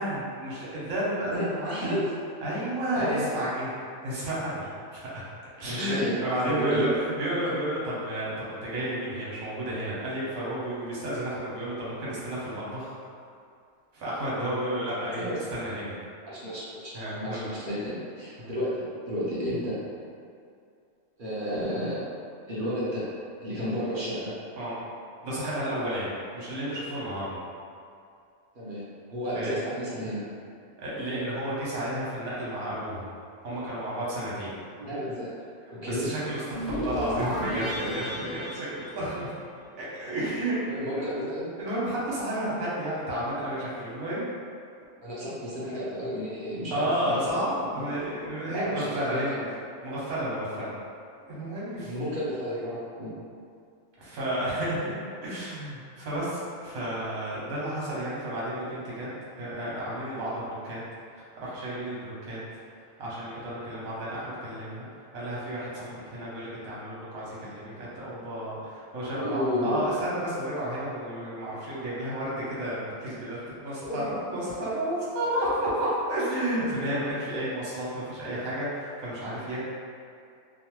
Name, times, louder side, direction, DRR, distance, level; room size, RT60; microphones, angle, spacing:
voice 1, 0.0-2.0 2.4-3.7 4.0-4.7 4.9-5.3 5.6-12.9 13.9-15.9 16.9-17.5 18.4-18.5 24.6-24.8 25.2-27.4 29.3-29.6 30.8-33.1 33.4-34.6 35.8-39.3 39.8-40.6 40.9-41.1 41.6-44.3 46.7-49.3 49.8-50.7 51.3-51.9 54.0-59.1 59.4-60.8 61.1-62.4 63.0-64.9 65.1-79.6, right 1 dB, 80° right, -8 dB, 1.3 m, -32 dB
voice 2, 1.3-2.0 2.9-3.2 5.6-6.2 6.4-6.9 15.2-15.4 16.3-16.9 17.2-19.8 21.2-22.1 22.5-23.1 23.4-24.3 28.5-28.8 29.1-30.2 34.8-35.3 35.8-36.1 40.7-41.4 45.0-47.3 48.5-49.5 51.8-53.2 69.1-69.9 73.8-74.1 77.2-77.4, equal, 50° right, -9 dB, 0.7 m, -32 dB
sound 1, 36.5-39.7, equal, ahead, 0.4 m, -33 dB
3.0 x 2.1 x 3.0 m, 2.4 s
omnidirectional pair, 1.4 m